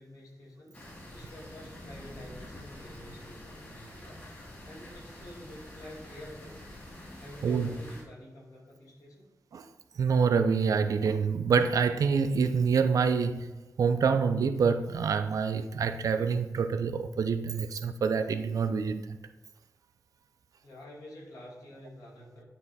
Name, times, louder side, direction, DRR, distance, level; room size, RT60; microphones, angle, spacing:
voice 1, 0.0-6.6 7.2-9.3 20.6-22.4, left 1 dB, 70° left, 2.1 m, -49 dB
sound 1, 0.7-8.0, left 1 dB, 30° left, 2.1 m, -47 dB
voice 2, 7.4-7.7 9.5-9.7 10.0-13.5 13.8-19.2, right 5 dB, 70° right, 0.4 m, -26 dB
9.4 x 3.3 x 4.1 m
wide cardioid pair, 150°, 6 cm